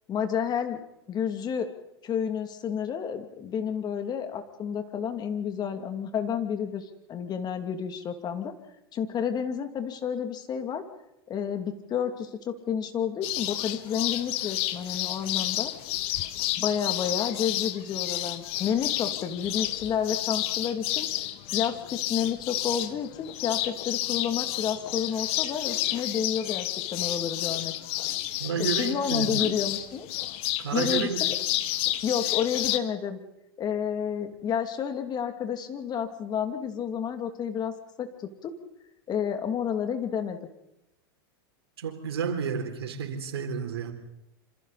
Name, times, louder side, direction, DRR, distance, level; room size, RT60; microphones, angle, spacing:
voice 1, 0.1-0.8 1.1-1.7 2.0-8.5 8.9-10.8 11.3-15.7 16.6-21.1 21.5-26.7 26.9-27.7 28.6-30.2 30.7-31.4 32.0-33.2 33.6-37.7 38.0-38.1 38.4-38.5 39.1-40.4, left 8 dB, 30° left, 2.6 m, -30 dB
sound 1, 13.2-32.8, left 15 dB, 50° left, 1.4 m, -30 dB
voice 2, 28.4-29.6 30.6-31.3 41.8-43.9, right 6 dB, 75° right, 4.1 m, -31 dB
27.5 x 26.5 x 4.2 m
hypercardioid pair, 100°, 13 cm